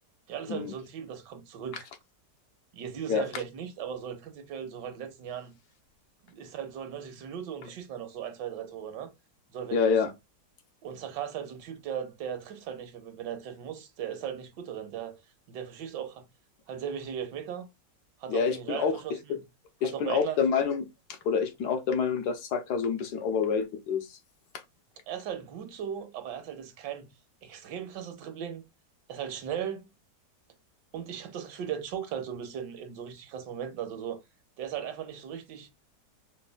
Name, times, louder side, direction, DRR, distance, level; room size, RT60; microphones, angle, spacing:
voice 1, 0.3-1.9 2.7-5.5 6.2-9.1 9.5-10.0 10.8-15.2 15.5-16.3 16.7-17.7 18.2-19.5 19.8-20.4 25.1-27.1 27.4-28.6 29.1-29.9 30.9-34.2 34.6-35.7, right 8 dB, 80° right, 1.4 m, -37 dB
voice 2, 9.7-10.1 18.3-19.0 19.3-19.4 19.8-20.9 21.2-24.2, left 6 dB, 70° left, 1.2 m, -27 dB
5.3 x 2.2 x 2.2 m
omnidirectional pair, 1.9 m